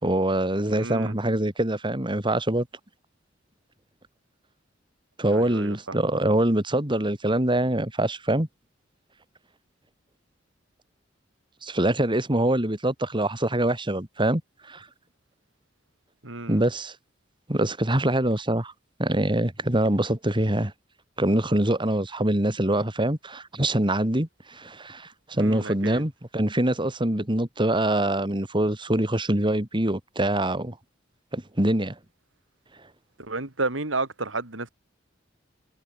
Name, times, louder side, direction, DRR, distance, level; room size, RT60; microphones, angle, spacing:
voice 1, 0.0-2.7 5.2-8.5 11.6-14.4 14.7-14.9 16.5-16.9 17.5-18.7 19.0-20.7 21.2-30.7 31.3-31.9, right 1 dB, 25° right, 3.1 m, -24 dB
voice 2, 0.7-1.1 5.3-5.8 16.2-16.6 25.4-26.0 33.2-34.7, right 3 dB, 85° right, 3.7 m, -31 dB
head